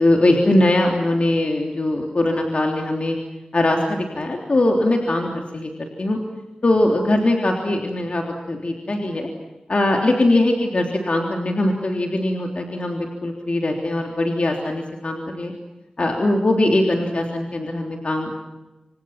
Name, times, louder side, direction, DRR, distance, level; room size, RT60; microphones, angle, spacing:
voice 1, 0.0-3.2 3.5-6.2 6.6-9.3 9.7-15.5 16.0-18.3, left 1 dB, 55° left, 1 dB, 3.5 m, -21 dB
29.0 x 26.5 x 6.0 m, 1.1 s
wide cardioid pair, 60°, 2 cm